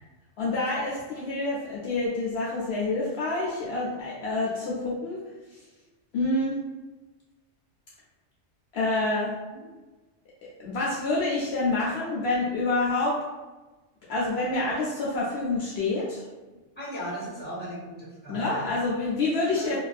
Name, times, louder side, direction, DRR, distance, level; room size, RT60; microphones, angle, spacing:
voice 1, 0.4-5.2 6.1-6.6 8.7-9.3 10.6-13.2 14.1-16.2 18.3-19.8, left 2 dB, 65° left, -6 dB, 0.7 m, -27 dB
voice 2, 16.8-18.8 19.6-19.8, equal, 10° left, -8 dB, 0.9 m, -37 dB
2.4 x 2.2 x 2.4 m, 1.2 s
omnidirectional pair, 1.2 m